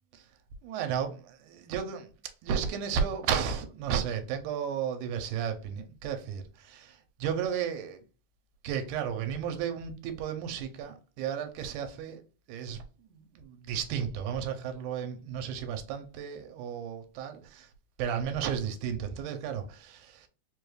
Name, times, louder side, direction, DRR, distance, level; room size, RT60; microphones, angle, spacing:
voice 1, 0.6-2.1 2.4-8.0 8.6-12.2 12.5-17.7 18.0-20.3, right 7 dB, 80° right, 2.1 m, -33 dB
5.0 x 2.3 x 3.1 m
omnidirectional pair, 3.5 m